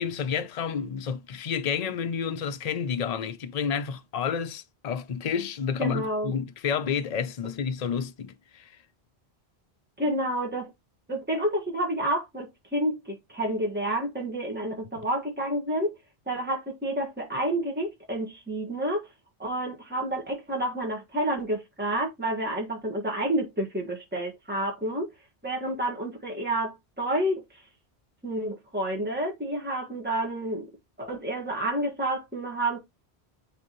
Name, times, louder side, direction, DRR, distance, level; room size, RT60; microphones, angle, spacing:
voice 1, 0.0-8.8, left 7 dB, 45° left, 0.6 m, -30 dB
voice 2, 5.8-6.3 10.0-10.7 11.1-15.9 16.3-19.1 19.4-25.1 25.4-27.4 28.2-30.7 31.0-32.8, right 1 dB, 10° right, 1.6 m, -29 dB
9.1 x 3.6 x 3.0 m
omnidirectional pair, 1.1 m